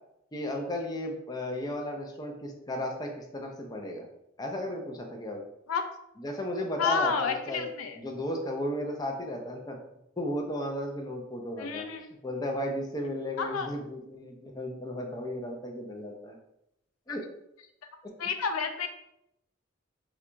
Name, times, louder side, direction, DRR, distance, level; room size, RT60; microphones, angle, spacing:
voice 1, 0.3-4.1 4.4-5.4 6.2-7.7 8.0-9.8 10.2-11.9 12.2-16.4 17.1-17.2, left 1 dB, 20° left, 1 dB, 0.5 m, -34 dB
voice 2, 6.8-8.0 11.6-12.1 13.4-13.7 18.2-18.9, left 5 dB, 80° left, 7 dB, 0.4 m, -30 dB
5.7 x 2.3 x 2.6 m, 0.81 s
head